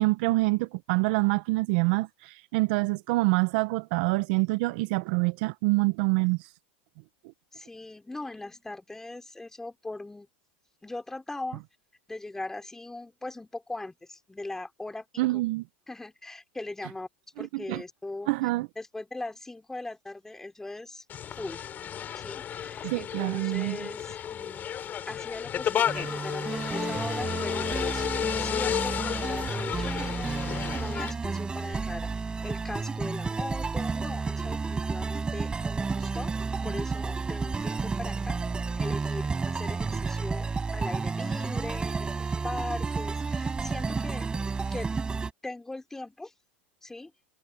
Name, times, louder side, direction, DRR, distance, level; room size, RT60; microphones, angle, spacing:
voice 1, 0.0-6.4 15.2-15.6 17.4-17.8 18.3-18.7 22.8-23.9, right 23 dB, 60° right, 1.3 m, -26 dB
voice 2, 7.5-10.3 10.8-11.6 12.1-15.4 15.9-17.1 17.4-18.3 18.7-21.0 21.4-21.6 22.1-24.7 25.1-28.1 28.4-38.4 38.7-44.3 44.7-44.9 45.4-46.3 46.8-47.1, left 2 dB, 5° left, 5.0 m, -40 dB
sound 1, 21.1-31.1, left 9 dB, 30° left, 5.9 m, -32 dB
sound 2, 25.9-45.3, right 4 dB, 15° right, 7.2 m, -31 dB
hypercardioid pair, 115°, 6 cm